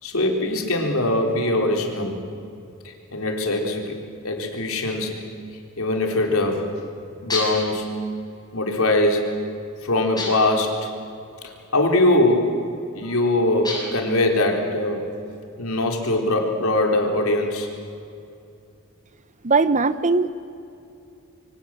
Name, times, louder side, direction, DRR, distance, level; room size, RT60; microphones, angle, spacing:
voice 1, 0.0-2.2 2.8-5.3 5.8-6.8 7.2-8.0 8.5-9.4 9.8-10.9 11.7-12.6 12.9-15.1 15.6-17.7, left 1 dB, 75° left, 2 dB, 4.0 m, -22 dB
sound 1, 7.3-7.7 10.2-10.6 13.6-14.1, left 2 dB, 20° left, 6.5 m, -29 dB
voice 2, 19.4-20.3, right 4 dB, 35° right, 14 dB, 0.9 m, -19 dB
26.5 x 24.0 x 7.8 m, 2.6 s
head